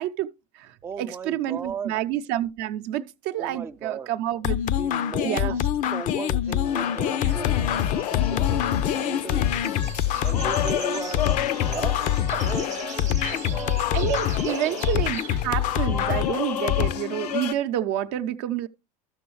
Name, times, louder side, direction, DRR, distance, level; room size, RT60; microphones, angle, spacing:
voice 1, 0.0-4.6 5.2-5.6 13.9-18.7, right 12 dB, 60° right, 0.7 m, -29 dB
voice 2, 0.8-1.9 3.4-4.1 4.8-8.6 8.8-9.5 10.2-13.8 14.5-14.9, right 5 dB, 15° right, 0.4 m, -37 dB
sound 1, 4.4-16.9, left 10 dB, 40° left, 0.5 m, -25 dB
sound 2, 6.5-16.3, right 10 dB, 40° right, 0.9 m, -43 dB
sound 3, 6.6-17.5, left 10 dB, 90° left, 0.5 m, -32 dB
13.0 x 6.1 x 3.1 m
hypercardioid pair, 95°, 20 cm